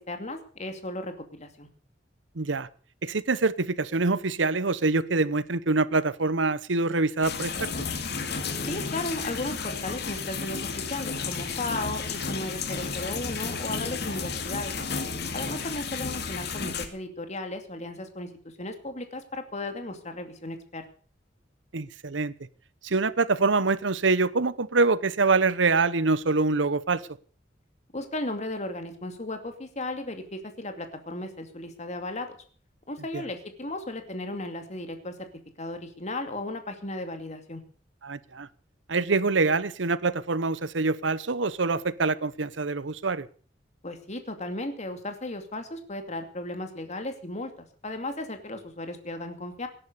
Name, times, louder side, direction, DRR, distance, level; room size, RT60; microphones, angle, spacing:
voice 1, 0.1-1.7 8.7-14.7 15.3-18.3 18.6-20.8 27.9-32.4 32.9-35.1 35.6-37.6 43.8-47.5 47.8-49.7, left 2 dB, 40° left, 7 dB, 2.5 m, -35 dB
voice 2, 2.3-2.7 3.0-7.7 21.7-22.3 22.8-27.0 33.1-33.2 38.0-38.5 38.9-43.3, right 3 dB, 85° right, 17 dB, 1.0 m, -25 dB
sound 1, 7.2-16.9, left 5 dB, 60° left, 2.4 m, -32 dB
18.0 x 10.5 x 6.7 m, 0.43 s
head